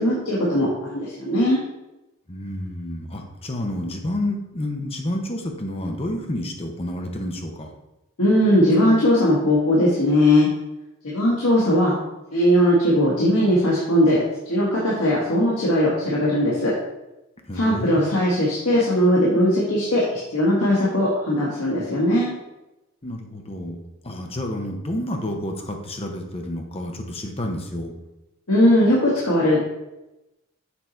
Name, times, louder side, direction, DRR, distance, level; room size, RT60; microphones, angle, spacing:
voice 1, 0.0-1.6 8.2-10.5 11.0-11.9 12.3-16.7 17.5-22.3 28.5-29.6, left 1 dB, 85° left, -6 dB, 1.5 m, -19 dB
voice 2, 2.3-7.7 17.4-18.2 23.0-23.8 24.0-27.9, left 1 dB, 25° left, 3 dB, 0.8 m, -29 dB
7.0 x 4.0 x 4.4 m, 0.96 s
head